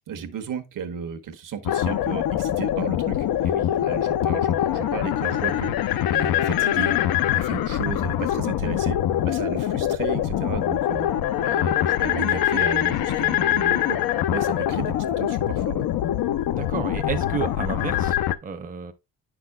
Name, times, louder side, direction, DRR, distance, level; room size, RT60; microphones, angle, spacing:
voice 1, 0.1-3.2 3.7-7.0 7.3-9.0 9.2-11.1 11.4-14.0 14.3-15.8, right 7 dB, 65° right, 1.2 m, -34 dB
sound 1, 1.7-18.4, left 12 dB, 80° left, 0.7 m, -24 dB
voice 2, 3.4-4.1 16.5-18.9, right 6 dB, 25° right, 0.7 m, -32 dB
9.3 x 6.0 x 2.3 m
cardioid pair, 120°, 35 cm